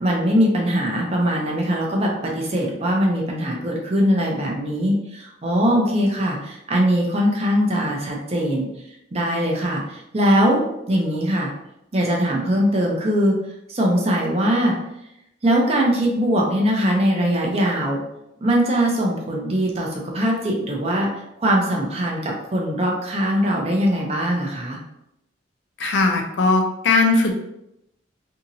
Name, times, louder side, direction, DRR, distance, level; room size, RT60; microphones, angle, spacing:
voice 1, 0.0-8.7 9.1-10.6 10.9-11.5 11.9-13.4 13.7-14.8 15.4-18.0 18.4-21.1 21.4-24.8, equal, 30° right, -1 dB, 0.6 m, -21 dB
voice 2, 25.8-27.3, left 3 dB, 65° left, 2 dB, 0.5 m, -19 dB
2.8 x 2.7 x 2.6 m, 0.82 s
head